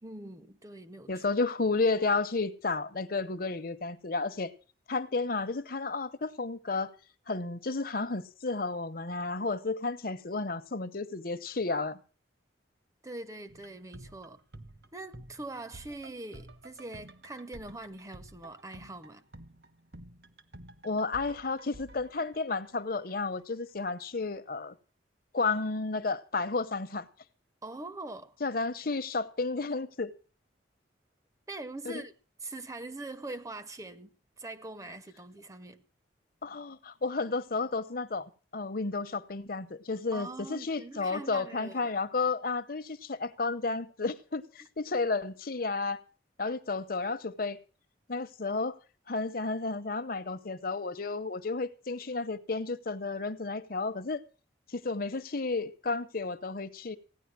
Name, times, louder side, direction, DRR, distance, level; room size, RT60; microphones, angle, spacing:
voice 1, 0.0-1.2 13.0-14.4 14.9-19.2 27.6-28.3 31.5-32.1 32.4-35.8 40.1-41.9, right 2 dB, 15° right, 0.6 m, -43 dB
voice 2, 1.1-4.5 4.9-6.9 7.3-12.0 20.8-24.7 25.3-27.1 28.4-30.1 31.8-32.0 36.4-46.0 46.4-47.6 48.1-48.8 49.1-54.2 54.7-57.0, left 3 dB, 50° left, 0.8 m, -32 dB
sound 1, 13.5-23.4 23.7-23.8, right 1 dB, 60° right, 1.1 m, -51 dB
16.5 x 10.0 x 6.0 m
head